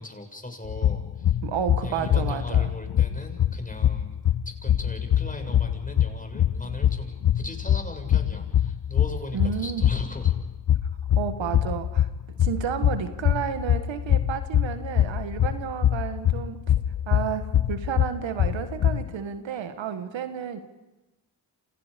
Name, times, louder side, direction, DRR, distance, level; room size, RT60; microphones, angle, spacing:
voice 1, 0.0-1.4 1.8-4.2 4.5-10.3 19.5-19.6, left 1 dB, 20° left, 5 dB, 6.8 m, -38 dB
sound 1, 0.6-19.1, left 11 dB, 55° left, 0.8 m, -24 dB
voice 2, 1.4-2.7 9.3-9.9 11.2-12.1 12.4-16.6 17.1-20.6, right 8 dB, 85° right, 9 dB, 1.6 m, -31 dB
28.5 x 28.0 x 5.2 m, 1.1 s
supercardioid pair, 40°, 44 cm